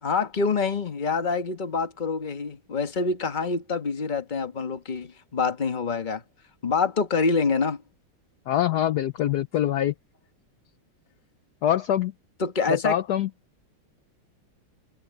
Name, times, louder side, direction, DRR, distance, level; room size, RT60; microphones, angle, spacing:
voice 1, 0.0-6.2 6.6-7.8 12.4-13.0, left 4 dB, 25° left, 1.3 m, -26 dB
voice 2, 8.5-9.9 11.6-12.1 12.7-13.3, left 11 dB, 65° left, 1.1 m, -24 dB
omnidirectional pair, 2.3 m